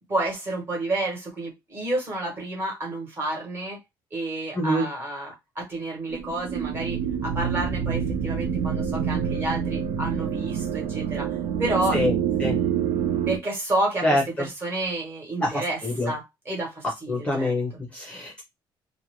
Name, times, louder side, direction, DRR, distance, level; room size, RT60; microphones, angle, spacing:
voice 1, 0.1-3.8 4.1-12.8 13.3-17.5, right 2 dB, 25° right, 1.2 m, -30 dB
voice 2, 4.5-4.9 11.9-12.1 12.4-12.6 14.0-14.5 15.4-16.1 17.1-18.4, left 1 dB, 15° left, 0.6 m, -25 dB
sound 1, 6.1-13.4, right 8 dB, 65° right, 0.5 m, -27 dB
2.4 x 2.1 x 3.0 m
cardioid pair, 170°, 9 cm